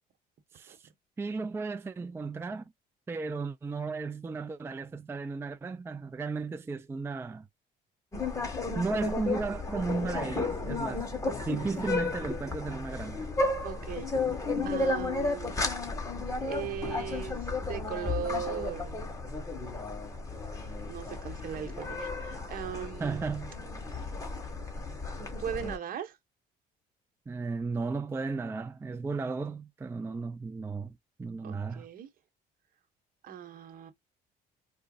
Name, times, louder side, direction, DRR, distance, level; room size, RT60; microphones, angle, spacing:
voice 1, 1.2-2.6 3.1-7.5 8.8-11.1 11.5-13.3 23.0-23.5 27.3-30.9 31.2-31.9, right 4 dB, 15° right, 0.4 m, -34 dB
sound 1, 8.1-25.8, left 3 dB, 20° left, 1.7 m, -33 dB
voice 2, 13.6-14.1 14.6-15.6 16.4-19.0 20.9-23.3 24.0-24.1 25.4-26.2 31.4-32.1 33.2-33.9, right 9 dB, 55° right, 1.1 m, -38 dB
5.0 x 2.3 x 2.3 m
cardioid pair, 110°, 17 cm